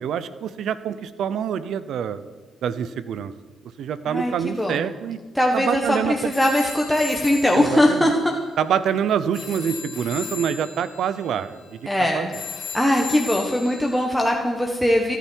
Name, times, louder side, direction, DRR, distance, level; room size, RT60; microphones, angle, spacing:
voice 1, 0.0-2.2 2.6-3.3 3.8-5.2 5.5-6.3 7.5-8.1 8.6-11.8 12.1-12.3, right 8 dB, 70° right, 14 dB, 0.7 m, -26 dB
voice 2, 4.1-4.9 5.3-8.3 11.9-12.3 12.7-15.2, left 1 dB, ahead, 0 dB, 1.5 m, -21 dB
sound 1, 6.3-14.0, left 7 dB, 60° left, 1.6 m, -37 dB
27.0 x 9.2 x 4.7 m, 1.4 s
cardioid pair, 90°, 0 cm